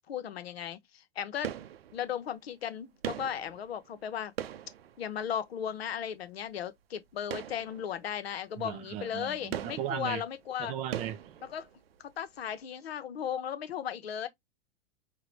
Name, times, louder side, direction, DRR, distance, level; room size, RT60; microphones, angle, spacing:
voice 1, 0.1-1.5 1.9-4.3 5.0-10.8 11.4-11.7 12.0-14.3, left 9 dB, 70° left, 0.7 m, -36 dB
sound 1, 1.4-2.3 3.0-5.6 7.2-8.2 8.6-8.7 9.5-12.1 12.3-12.4, right 10 dB, 70° right, 0.6 m, -41 dB
voice 2, 8.6-10.2 10.6-11.2, right 10 dB, 20° right, 0.3 m, -36 dB
4.8 x 2.2 x 3.0 m
figure-of-eight pair, 100°, 32 cm